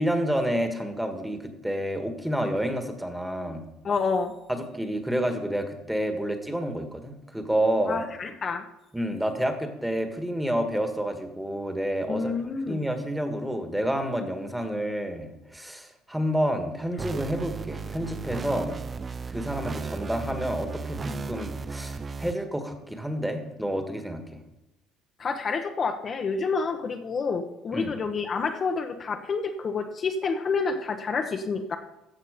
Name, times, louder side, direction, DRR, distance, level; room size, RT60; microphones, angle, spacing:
voice 1, 0.0-3.6 4.5-8.0 8.9-12.3 12.7-18.8 19.3-24.4 27.7-27.9, equal, 5° right, 6 dB, 1.6 m, -29 dB
voice 2, 3.8-4.3 7.9-8.6 12.1-12.8 25.2-31.8, left 4 dB, 40° left, 4 dB, 0.9 m, -28 dB
sound 1, 17.0-22.3, right 4 dB, 30° right, 0.5 m, -35 dB
14.0 x 7.3 x 5.1 m, 0.93 s
cardioid pair, 105°, 0 cm